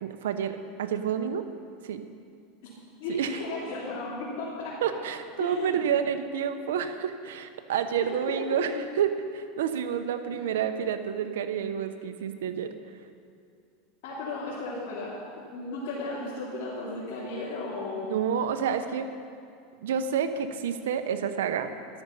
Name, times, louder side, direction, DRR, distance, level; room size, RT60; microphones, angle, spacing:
voice 1, 0.0-1.5 1.8-2.0 3.1-3.4 4.8-12.7 18.1-19.1 19.8-21.7, right 8 dB, 90° right, 8 dB, 0.9 m, -29 dB
voice 2, 3.0-5.0 5.4-5.8 8.4-8.5 10.3-10.4 14.0-15.2 15.5-18.2, left 2 dB, 65° left, -9 dB, 3.8 m, -35 dB
13.5 x 12.0 x 5.6 m, 2.3 s
supercardioid pair, 130°, 0 cm